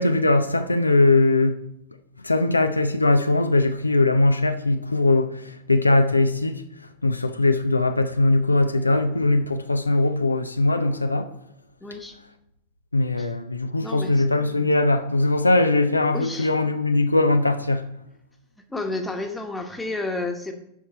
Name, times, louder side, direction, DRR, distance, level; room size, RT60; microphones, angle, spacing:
voice 1, 0.0-1.6 2.2-6.6 7.0-11.3 12.9-17.9, left 2 dB, 80° left, 0.5 m, -20 dB
voice 2, 11.8-12.1 13.2-13.3 13.8-14.2 16.1-16.5 18.7-20.5, left 2 dB, 10° left, 1.2 m, -31 dB
7.1 x 5.8 x 5.6 m
figure-of-eight pair, 90°, 0 cm